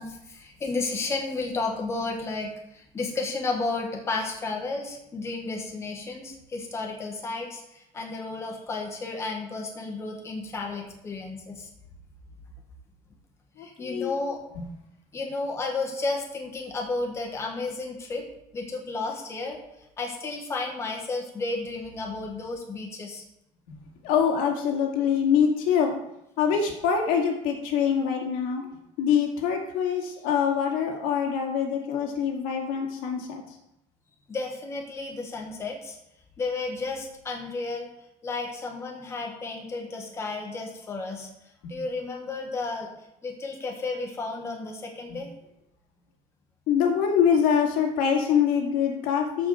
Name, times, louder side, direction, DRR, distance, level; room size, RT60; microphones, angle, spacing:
voice 1, 0.0-11.7 13.6-14.4 15.1-18.3 18.5-19.6 20.0-23.2 34.3-36.0 36.4-37.9 38.2-41.3 41.7-42.9 43.2-45.3, left 3 dB, 20° left, 1 dB, 1.5 m, -32 dB
voice 2, 13.6-14.1 14.6-14.7 24.0-25.9 26.4-28.7 29.0-33.4 41.6-41.7 45.1-45.2 46.7-49.5, left 7 dB, 80° left, 1 dB, 2.2 m, -24 dB
14.0 x 5.1 x 5.0 m, 0.84 s
cardioid pair, 170°, 14 cm